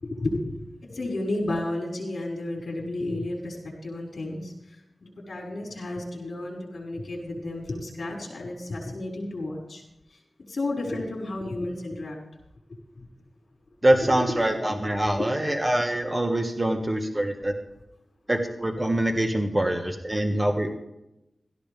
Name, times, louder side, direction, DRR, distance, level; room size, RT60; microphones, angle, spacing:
voice 1, 0.0-4.8 5.0-9.8 10.5-12.2 13.0-13.1 14.0-14.8 15.2-15.3, left 2 dB, 60° left, -1 dB, 5.4 m, -32 dB
voice 2, 13.8-17.5 18.3-20.7, right 1 dB, 20° right, 4 dB, 1.6 m, -24 dB
16.5 x 14.5 x 3.5 m, 0.88 s
wide cardioid pair, 95°, 0 cm